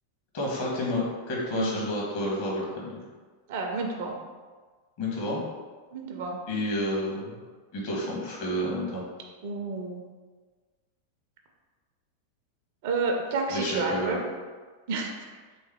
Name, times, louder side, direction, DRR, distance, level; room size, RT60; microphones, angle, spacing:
voice 1, 0.3-3.0 5.0-5.4 6.5-7.4 7.7-9.0 13.5-14.2, left 1 dB, 50° left, -4 dB, 1.3 m, -30 dB
voice 2, 1.5-1.9 3.5-4.2 5.9-6.4 9.4-10.0 12.8-14.2 14.9-15.1, right 3 dB, 50° right, 2 dB, 0.5 m, -30 dB
3.3 x 3.1 x 3.4 m, 1.4 s
figure-of-eight pair, 90°, 0 cm